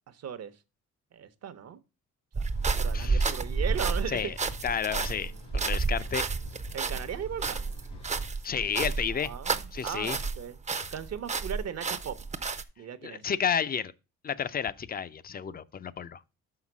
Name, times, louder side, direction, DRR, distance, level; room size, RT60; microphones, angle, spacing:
voice 1, 0.1-0.6 1.1-1.8 2.3-2.5 2.7-4.2 6.7-7.7 9.1-10.6 10.9-12.2 12.8-13.3, right 8 dB, 55° right, 0.9 m, -37 dB
sound 1, 2.3-10.4 10.7-12.6, right 4 dB, 25° right, 0.6 m, -31 dB
sound 2, 2.5-8.3, left 2 dB, 85° left, 2.7 m, -49 dB
voice 2, 2.9-3.3 4.1-4.3 4.6-6.2 8.4-9.3 9.7-10.2 13.0-13.9 14.2-16.2, left 7 dB, 30° left, 0.5 m, -31 dB
5.9 x 5.7 x 6.0 m
cardioid pair, 90°, 30 cm